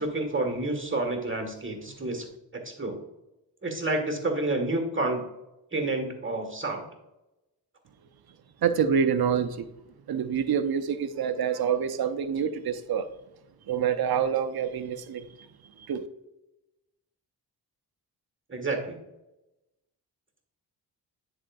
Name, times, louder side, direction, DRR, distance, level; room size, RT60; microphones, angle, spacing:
voice 1, 0.0-2.3 2.7-3.0 3.6-5.2 5.7-6.8 18.5-19.0, right 2 dB, 25° right, 4 dB, 1.8 m, -29 dB
voice 2, 8.6-9.7 10.1-13.1 13.7-15.2 15.9-16.0, right 7 dB, 55° right, 9 dB, 0.8 m, -26 dB
9.7 x 4.6 x 2.6 m, 0.93 s
supercardioid pair, 45°, 45 cm